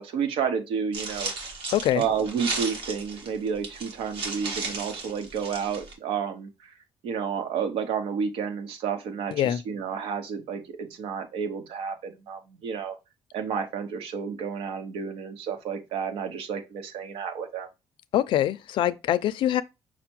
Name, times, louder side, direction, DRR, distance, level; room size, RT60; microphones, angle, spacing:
voice 1, 0.0-1.3 1.9-6.5 7.0-9.3 9.7-12.9 13.3-17.7, right 6 dB, 85° right, 0.9 m, -30 dB
sound 1, 0.9-5.9, right 4 dB, 65° right, 1.4 m, -35 dB
voice 2, 1.7-2.0 9.3-9.6 18.1-19.6, left 12 dB, 65° left, 0.4 m, -24 dB
5.8 x 2.1 x 4.4 m
cardioid pair, 145°, 9 cm